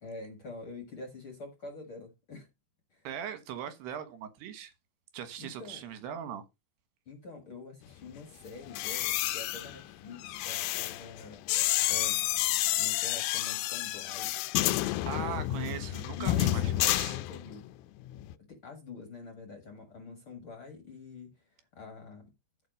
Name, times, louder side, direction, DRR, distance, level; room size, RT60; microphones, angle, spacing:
voice 1, 0.0-2.5 2.9-3.1 5.4-5.8 7.1-11.4 11.9-12.2 12.8-14.3 16.2-17.6 18.4-22.3, left 3 dB, 45° left, 1.7 m, -46 dB
voice 2, 3.1-4.7 5.1-6.4 15.1-17.2, right 9 dB, 80° right, 3.5 m, -39 dB
sound 1, 8.6-17.7 18.0-18.3, left 15 dB, 80° left, 2.2 m, -30 dB
13.5 x 4.9 x 5.2 m
omnidirectional pair, 4.7 m